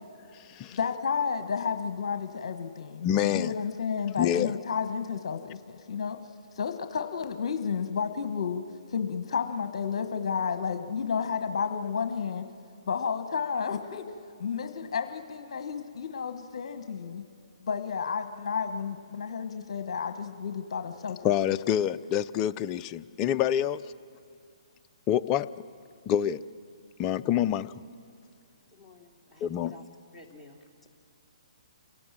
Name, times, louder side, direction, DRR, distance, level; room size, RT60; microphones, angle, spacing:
voice 1, 0.7-6.2 6.5-8.6 8.9-12.4 12.9-14.0 14.4-17.2 17.7-21.3, left 6 dB, 60° left, 7 dB, 1.3 m, -31 dB
voice 2, 3.0-3.5 4.2-4.5 21.2-23.8 25.1-25.5 26.1-26.4 27.0-27.7 29.4-29.7, left 10 dB, 25° left, 11 dB, 0.5 m, -26 dB
voice 3, 28.7-29.9 30.1-30.9, left 2 dB, 5° left, -5 dB, 2.9 m, -52 dB
28.5 x 18.0 x 7.5 m, 2.4 s
hypercardioid pair, 140°, 3 cm